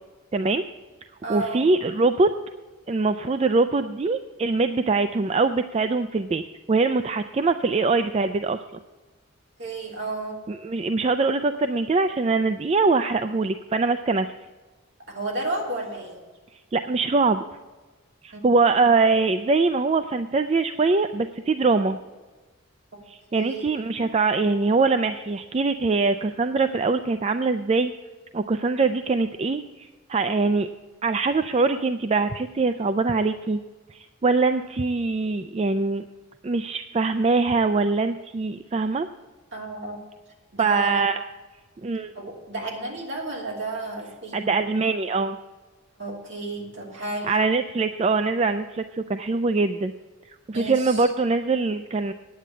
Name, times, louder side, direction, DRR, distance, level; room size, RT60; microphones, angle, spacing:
voice 1, 0.3-0.6 1.3-2.3 2.9-6.4 6.7-8.6 10.5-14.3 16.7-17.4 18.2-22.0 23.1-27.9 28.3-30.7 31.0-33.6 33.9-36.0 36.4-39.1 40.6-41.2 41.8-42.1 44.3-45.4 47.3-49.9 50.5-52.1, right 3 dB, 30° right, 9 dB, 0.3 m, -23 dB
voice 2, 1.2-1.7 9.6-10.4 15.1-16.2 18.3-18.5 23.3-23.7 39.5-40.0 40.5-41.1 42.1-44.8 46.0-47.3 50.5-51.1, right 2 dB, 55° right, -1 dB, 3.1 m, -32 dB
9.3 x 8.8 x 8.3 m, 1.2 s
head